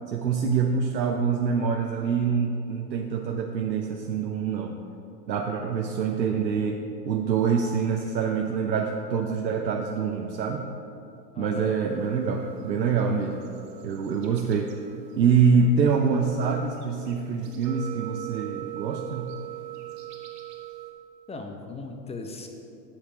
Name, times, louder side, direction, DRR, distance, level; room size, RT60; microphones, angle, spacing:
voice 1, 0.1-4.7 5.3-10.6 11.4-13.4 13.8-14.7 15.2-19.3, right 5 dB, 90° right, 2 dB, 0.8 m, -25 dB
voice 2, 11.3-11.7 21.3-22.5, left 3 dB, 10° left, 4 dB, 0.7 m, -38 dB
sound 1, 11.9-20.9, right 14 dB, 35° right, 1.5 m, -42 dB
8.5 x 7.3 x 5.0 m, 2.7 s
hypercardioid pair, 105°, 50 cm